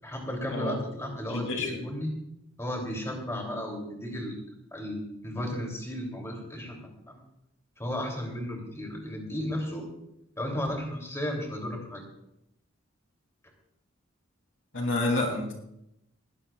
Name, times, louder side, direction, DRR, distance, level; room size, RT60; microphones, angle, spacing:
voice 1, 0.0-2.1 2.6-4.4 4.7-6.8 7.1-7.2 7.8-9.9 10.4-12.0, left 1 dB, 15° left, 1 dB, 3.2 m, -34 dB
voice 2, 1.3-1.7 14.7-15.5, left 2 dB, 80° left, 1 dB, 3.4 m, -28 dB
20.0 x 16.0 x 2.5 m, 0.81 s
head